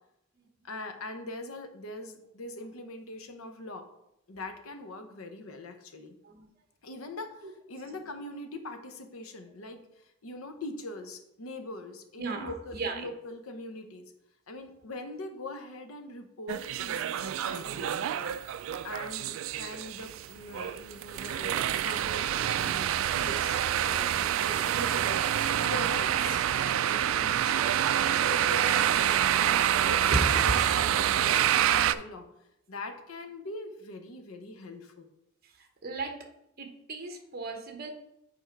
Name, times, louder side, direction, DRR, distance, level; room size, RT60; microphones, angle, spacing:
voice 1, 0.6-3.9 4.3-6.2 6.8-9.8 10.2-14.1 14.5-18.4 18.8-23.6 23.8-27.9 28.2-32.3 32.7-35.1, left 2 dB, 90° left, 6 dB, 0.9 m, -42 dB
voice 2, 12.2-13.1 24.6-24.8 30.1-30.2 35.6-36.2 36.6-37.9, right 3 dB, 45° right, 4 dB, 1.0 m, -35 dB
sound 1, 16.5-31.9, right 10 dB, 70° right, 0.3 m, -27 dB
7.0 x 4.5 x 4.5 m, 0.81 s
head